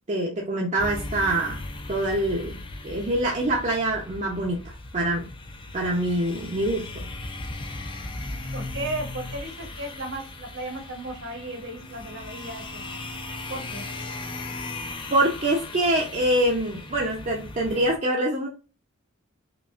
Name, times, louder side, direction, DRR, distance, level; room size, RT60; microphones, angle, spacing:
voice 1, 0.1-1.6 1.9-5.3 5.7-7.1 15.1-18.5, right 1 dB, 35° right, -1 dB, 0.6 m, -25 dB
sound 1, 0.8-18.0, left 2 dB, 25° left, 0.4 m, -37 dB
voice 2, 8.5-13.0 13.5-13.8, right 2 dB, 65° right, 3 dB, 1.0 m, -35 dB
5.1 x 2.5 x 2.4 m, 0.32 s
head